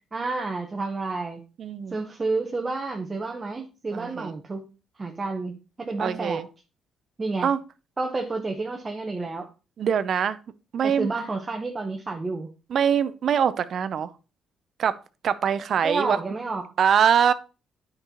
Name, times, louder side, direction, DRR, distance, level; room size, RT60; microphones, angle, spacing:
voice 1, 0.1-1.4 1.9-4.7 5.0-6.4 7.2-7.5 8.0-9.5 10.8-12.5 15.8-16.7, right 3 dB, 30° right, 3 dB, 0.9 m, -30 dB
voice 2, 1.6-2.0 3.9-4.3 6.0-6.5 7.4-7.6 9.8-10.4 10.7-11.1 12.7-14.1 14.8-15.0 15.2-16.2 16.8-17.3, right 8 dB, 60° right, 13 dB, 0.5 m, -23 dB
9.7 x 5.3 x 2.9 m, 0.32 s
cardioid pair, 90°, 0 cm